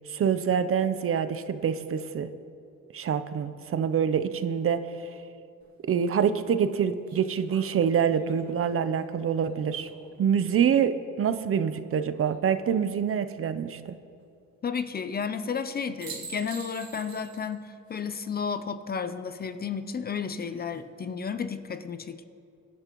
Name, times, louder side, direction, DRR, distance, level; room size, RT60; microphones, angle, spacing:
voice 1, 0.1-2.3 2.9-5.0 5.9-9.9 10.2-14.0, right 7 dB, 45° right, 11 dB, 0.7 m, -26 dB
sound 1, 5.6-5.7 7.1-10.3 12.1-12.8 15.5-15.7 16.0-17.5 17.9-18.0 20.3-20.8, right 5 dB, 70° right, 1.9 m, -47 dB
voice 2, 14.6-22.2, left 6 dB, 30° left, 11 dB, 0.6 m, -32 dB
24.0 x 11.0 x 3.0 m, 2.5 s
cardioid pair, 120°, 30 cm